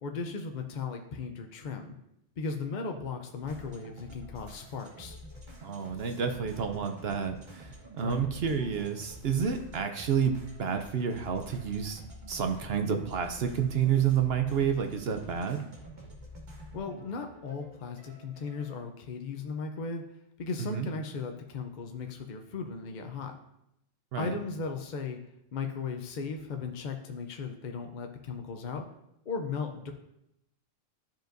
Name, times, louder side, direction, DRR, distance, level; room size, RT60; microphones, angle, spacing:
voice 1, 0.0-2.0 2.4-5.2 8.0-8.3 16.7-20.0 20.4-23.4 24.2-25.2 25.5-28.9 29.3-29.9, left 4 dB, 50° left, 4 dB, 0.6 m, -36 dB
sound 1, 3.4-18.8, equal, 40° right, 1.4 m, -48 dB
voice 2, 5.6-10.3 10.6-12.0 12.3-15.6 20.6-20.9 24.1-24.4, right 7 dB, 60° right, 6 dB, 0.8 m, -29 dB
12.0 x 5.2 x 2.6 m, 0.82 s
omnidirectional pair, 1.3 m